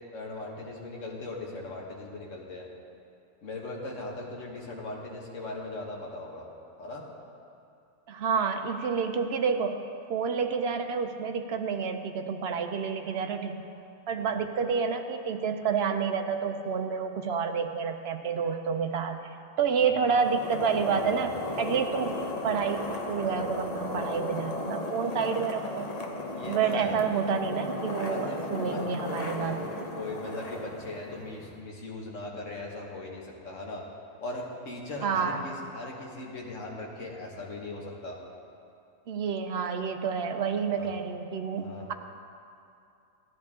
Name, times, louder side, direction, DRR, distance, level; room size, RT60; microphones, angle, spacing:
voice 1, 0.1-2.7 3.4-6.5 6.8-7.0 14.3-14.4 19.8-20.0 26.3-27.0 28.1-28.4 28.7-28.8 29.2-29.6 29.9-33.8 34.2-38.2 40.7-40.9 41.6-41.9, left 2 dB, 60° left, -2 dB, 1.7 m, -39 dB
voice 2, 8.1-9.8 10.1-13.6 14.1-19.2 19.6-21.3 21.6-25.9 26.5-29.6 35.0-35.4 39.1-41.9, right 6 dB, 65° right, 6 dB, 0.6 m, -29 dB
sound 1, 20.0-31.6, left 2 dB, 35° left, 0.7 m, -35 dB
14.0 x 10.0 x 3.6 m, 2.6 s
omnidirectional pair, 1.6 m